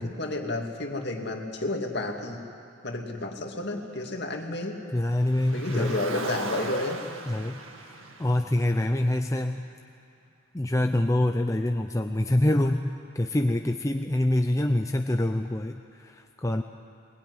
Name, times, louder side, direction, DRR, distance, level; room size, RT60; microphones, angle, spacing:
voice 1, 0.0-2.4 2.8-4.8 5.5-7.0, left 2 dB, 50° left, 2 dB, 2.5 m, -31 dB
voice 2, 4.9-6.0 7.3-9.6 10.5-16.6, left 1 dB, 15° left, 5 dB, 0.5 m, -26 dB
Car, 5.2-9.5, right 3 dB, 75° right, 1.9 m, -39 dB
21.0 x 21.0 x 9.8 m, 2.7 s
head